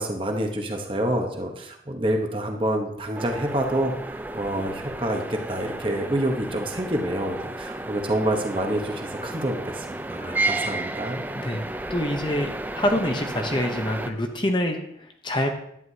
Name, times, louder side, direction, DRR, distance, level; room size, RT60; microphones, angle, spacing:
voice 1, 0.0-11.2, right 1 dB, 30° right, 3 dB, 0.9 m, -27 dB
sound 1, 3.1-14.1, right 2 dB, 10° right, 0.4 m, -32 dB
voice 2, 11.9-15.5, left 1 dB, 25° left, 4 dB, 0.8 m, -26 dB
11.0 x 9.4 x 2.8 m, 0.74 s
head